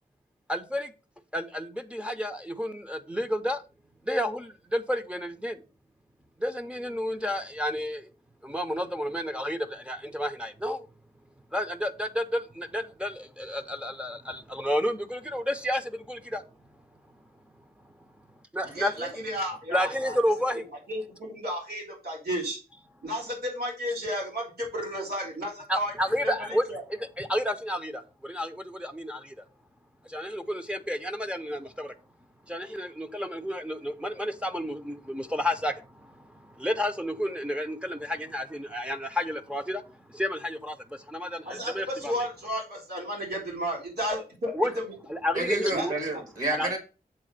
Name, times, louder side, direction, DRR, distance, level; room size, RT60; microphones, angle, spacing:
voice 1, 0.5-0.9 1.3-3.6 4.0-5.6 6.4-8.1 8.4-10.9 11.5-16.4 18.5-19.1 19.7-20.7 25.7-29.4 30.0-31.9 32.5-42.1 44.5-44.7 45.1-45.9 46.6-46.7, equal, 5° right, 0.6 m, -31 dB
voice 2, 18.6-20.1 20.9-22.6 23.0-25.9 26.4-26.8 41.4-44.5 45.7-45.9, equal, 85° right, 4.0 m, -33 dB
voice 3, 45.3-46.8, right 2 dB, 55° right, 1.9 m, -29 dB
7.6 x 3.5 x 6.5 m
wide cardioid pair, 125°, 16 cm